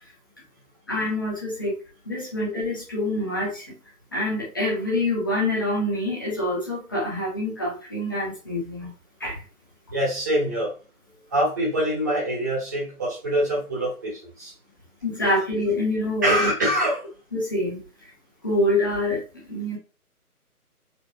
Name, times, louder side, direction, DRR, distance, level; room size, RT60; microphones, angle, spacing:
voice 1, 0.9-1.8 2.1-3.8 4.1-8.9 9.2-9.4 15.0-16.5 17.3-17.8 18.4-19.8, left 1 dB, 15° left, -5 dB, 0.8 m, -26 dB
voice 2, 9.9-10.7 11.3-14.5 16.2-17.0, right 1 dB, 10° right, -6 dB, 1.1 m, -24 dB
4.3 x 3.1 x 2.7 m, 0.34 s
figure-of-eight pair, 155°, 45 cm